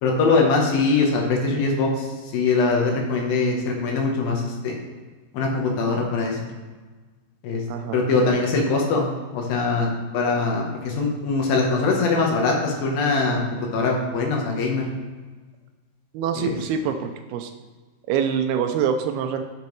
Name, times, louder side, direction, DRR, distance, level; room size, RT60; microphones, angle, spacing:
voice 1, 0.0-2.1 2.3-4.7 5.3-6.5 7.4-7.6 7.9-9.1 9.3-13.4 13.7-14.9 16.4-16.5, left 3 dB, 70° left, 0 dB, 2.6 m, -22 dB
voice 2, 7.7-8.0 16.1-17.5 18.1-19.4, right 7 dB, 80° right, 6 dB, 2.4 m, -25 dB
10.5 x 6.9 x 3.1 m, 1.4 s
omnidirectional pair, 4.6 m